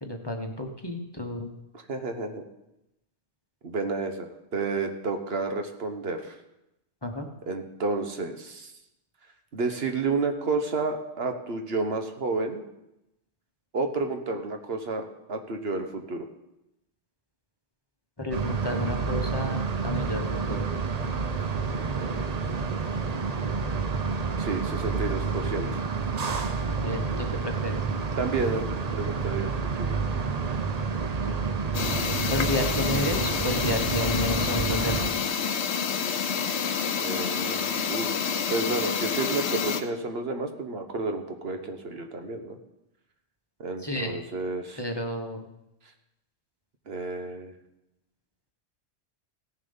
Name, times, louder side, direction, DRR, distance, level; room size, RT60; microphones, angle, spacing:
voice 1, 0.0-1.5 7.0-7.3 18.2-20.7 26.8-27.8 31.1-31.4 32.3-35.1 43.8-44.1 44.8-45.5, left 1 dB, 25° left, 3 dB, 1.1 m, -31 dB
voice 2, 1.9-2.4 3.6-6.3 7.5-8.7 9.5-12.6 13.7-16.2 21.7-22.2 24.4-25.8 28.2-29.5 29.8-30.0 37.0-38.1 38.5-42.6 43.6-44.8 46.9-47.5, right 3 dB, 65° right, 5 dB, 1.3 m, -31 dB
sound 1, 18.3-35.1, right 5 dB, 40° right, 0.8 m, -29 dB
sound 2, 31.7-39.8, left 6 dB, 75° left, 1.1 m, -28 dB
16.5 x 7.2 x 5.5 m, 0.89 s
omnidirectional pair, 1.1 m